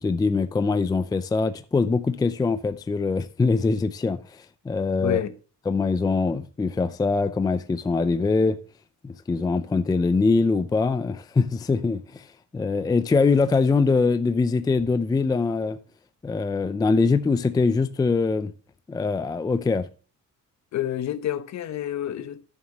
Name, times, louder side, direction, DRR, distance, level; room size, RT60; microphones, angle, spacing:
voice 1, 0.0-5.2 5.7-8.6 9.0-15.8 16.2-18.5 18.9-19.9, left 4 dB, 10° left, 0.4 m, -23 dB
voice 2, 5.0-5.3 20.7-22.5, left 11 dB, 55° left, 1.0 m, -28 dB
12.5 x 7.3 x 2.9 m
cardioid pair, 160°, 33 cm